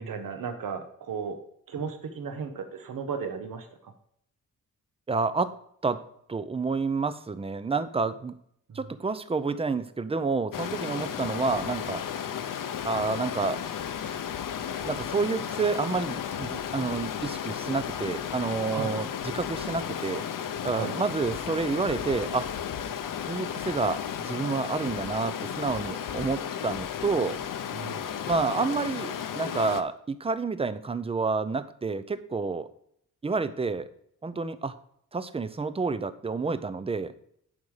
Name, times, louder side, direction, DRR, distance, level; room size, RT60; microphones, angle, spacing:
voice 1, 0.0-1.4 1.7-3.9 8.7-8.8 18.7-19.0 20.7-21.0 27.7-28.1, right 6 dB, 85° right, 7 dB, 1.2 m, -35 dB
voice 2, 5.1-5.6 5.8-6.0 6.3-8.3 8.7-12.3 12.8-13.6 14.8-20.2 20.6-22.5 23.3-27.4 28.3-32.7 33.2-33.9 34.2-34.8 35.1-37.1, right 4 dB, 20° right, 13 dB, 0.5 m, -29 dB
Stream, 10.5-29.8, left 8 dB, 75° left, 0.7 m, -34 dB
11.0 x 5.4 x 4.8 m, 0.70 s
wide cardioid pair, 170°, 32 cm